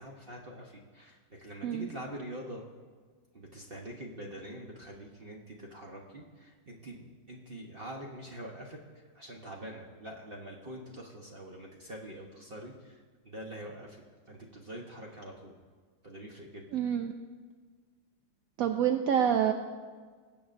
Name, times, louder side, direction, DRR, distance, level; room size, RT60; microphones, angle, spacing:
voice 1, 0.0-2.6 3.3-8.8 9.1-15.5 16.0-16.8, right 1 dB, 40° right, -1 dB, 0.9 m, -45 dB
voice 2, 16.7-17.1 18.6-19.5, right 9 dB, 75° right, 5 dB, 0.8 m, -27 dB
21.5 x 7.8 x 2.6 m, 1.5 s
omnidirectional pair, 2.0 m